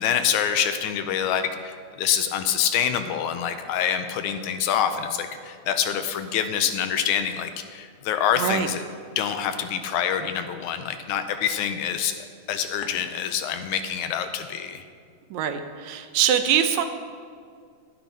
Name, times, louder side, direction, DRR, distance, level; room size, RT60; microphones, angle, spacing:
voice 1, 0.0-8.8 9.2-14.8, left 8 dB, 85° left, 8 dB, 2.0 m, -26 dB
voice 2, 8.4-8.7 15.3-16.8, right 9 dB, 80° right, 8 dB, 1.9 m, -23 dB
10.5 x 10.0 x 4.1 m, 2.2 s
omnidirectional pair, 3.5 m